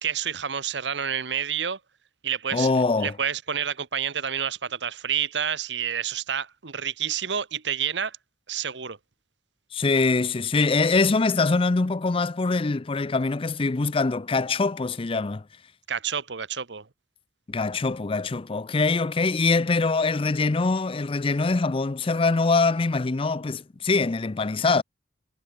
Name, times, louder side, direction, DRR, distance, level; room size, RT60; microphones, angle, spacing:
voice 1, 0.0-1.8 2.2-2.7 3.0-8.2 8.5-9.0 15.9-16.9, right 8 dB, 80° right, 1.2 m, -29 dB
voice 2, 2.5-3.2 9.7-15.4 17.5-24.8, left 3 dB, 30° left, 0.5 m, -23 dB
head